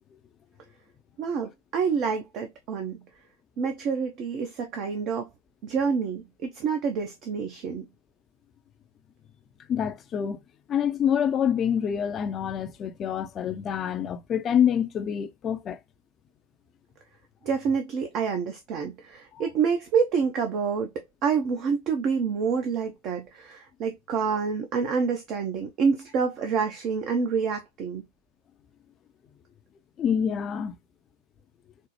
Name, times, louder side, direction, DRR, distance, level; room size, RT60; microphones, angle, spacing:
voice 1, 1.2-3.0 3.6-5.3 5.6-7.9 17.4-20.9 21.2-28.0, right 6 dB, 40° right, 0.6 m, -27 dB
voice 2, 9.7-10.4 10.7-15.8 19.3-19.4 30.0-30.8, left 8 dB, 25° left, 0.5 m, -26 dB
4.1 x 2.0 x 3.0 m
figure-of-eight pair, 90°, 0 cm